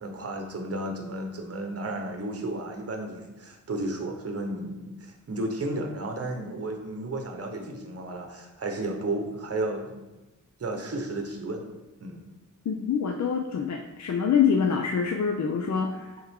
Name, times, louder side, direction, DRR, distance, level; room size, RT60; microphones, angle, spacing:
voice 1, 0.0-10.0 10.6-11.7 12.0-12.3, right 2 dB, 50° right, 3 dB, 0.9 m, -33 dB
voice 2, 12.7-16.1, left 7 dB, 60° left, 3 dB, 0.5 m, -25 dB
8.4 x 3.6 x 3.6 m, 1.1 s
wide cardioid pair, 170°, 32 cm